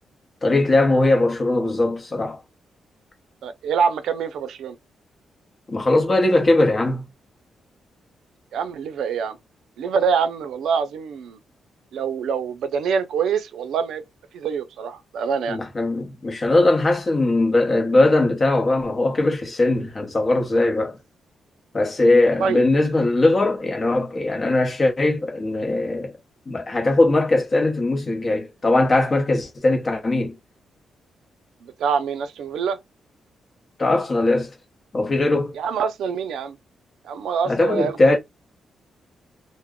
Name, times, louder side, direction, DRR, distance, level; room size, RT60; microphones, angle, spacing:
voice 1, 0.4-2.4 5.7-7.0 15.5-21.0 21.7-26.1 26.5-30.4 33.8-34.5 34.9-35.6 37.5-38.2, left 2 dB, 30° left, 0.8 m, -20 dB
voice 2, 3.4-4.8 8.5-9.4 9.8-11.4 11.9-14.0 14.3-15.6 20.6-20.7 22.4-22.6 31.6-32.8 35.6-36.6 37.0-38.2, right 6 dB, 90° right, 0.4 m, -25 dB
2.2 x 2.1 x 3.5 m
wide cardioid pair, 145°, 0 cm